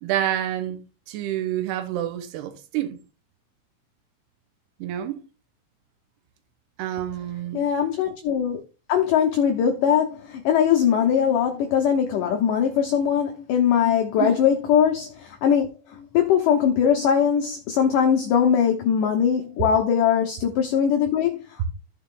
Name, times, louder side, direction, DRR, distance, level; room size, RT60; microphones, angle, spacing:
voice 1, 0.0-3.0 4.8-5.2 6.8-7.7 14.2-14.4 21.6-21.7, right 12 dB, 90° right, 3.1 m, -28 dB
voice 2, 7.5-8.6 8.9-21.4, left 8 dB, 70° left, 2.2 m, -21 dB
14.5 x 4.9 x 3.7 m
omnidirectional pair, 4.6 m